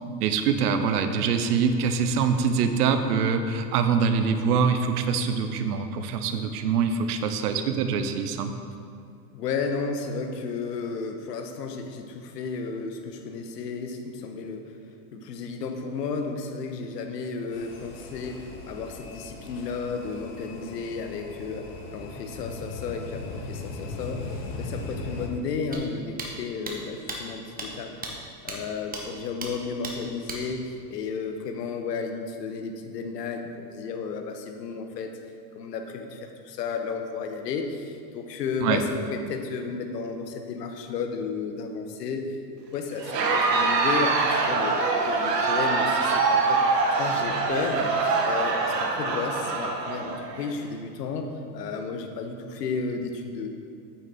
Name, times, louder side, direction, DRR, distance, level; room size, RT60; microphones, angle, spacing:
voice 1, 0.2-8.5 38.6-38.8, right 6 dB, 70° right, 8 dB, 1.0 m, -24 dB
voice 2, 9.3-14.8 15.1-24.3 24.6-27.9 28.4-35.1 35.5-42.4 42.7-46.6 47.0-53.5, left 4 dB, 80° left, 5 dB, 1.3 m, -33 dB
sound 1, 17.5-25.3, left 3 dB, 55° left, 1.9 m, -39 dB
sound 2, 25.7-25.8 26.2-26.3 26.7-26.8 27.1-27.2 27.6-27.7 28.0-28.1 28.5-28.6 28.9-29.0 29.4-29.5 29.8-29.9 30.3-30.4, right 3 dB, 20° right, 1.4 m, -34 dB
Crowd, 43.0-50.5, right 4 dB, 85° right, 1.5 m, -24 dB
8.8 x 8.6 x 4.1 m, 2.4 s
hypercardioid pair, 105°, 48 cm